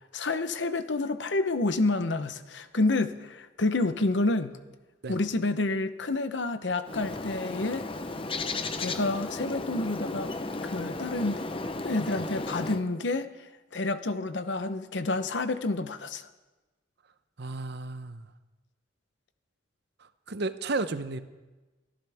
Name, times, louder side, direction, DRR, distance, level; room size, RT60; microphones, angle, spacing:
voice 1, 0.1-4.6 5.1-7.8 8.8-10.3 10.6-11.4 11.8-13.3 13.7-16.3, left 2 dB, 65° left, 11 dB, 0.9 m, -29 dB
Bird, 6.8-12.8, left 2 dB, 30° left, 0.8 m, -34 dB
voice 2, 17.4-18.2 20.3-21.2, right 3 dB, 60° right, 12 dB, 0.8 m, -32 dB
23.5 x 14.0 x 3.5 m, 1.2 s
head